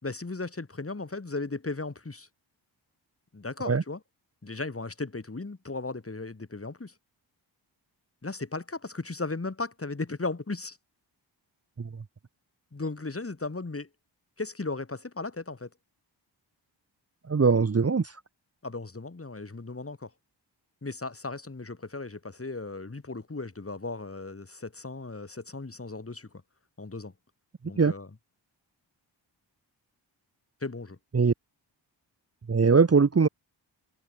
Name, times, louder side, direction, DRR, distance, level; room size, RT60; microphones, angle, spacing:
voice 1, 0.0-2.3 3.3-4.0 4.4-6.9 8.2-10.8 12.7-13.9 14.4-15.7 18.6-20.1 20.8-26.3 26.8-27.1 27.6-28.1 30.6-31.0, left 3 dB, 30° left, 4.0 m, -36 dB
voice 2, 17.3-18.1 27.8-27.9 31.1-31.3 32.5-33.3, right 5 dB, 30° right, 1.1 m, -21 dB
cardioid pair, 70°, 45 cm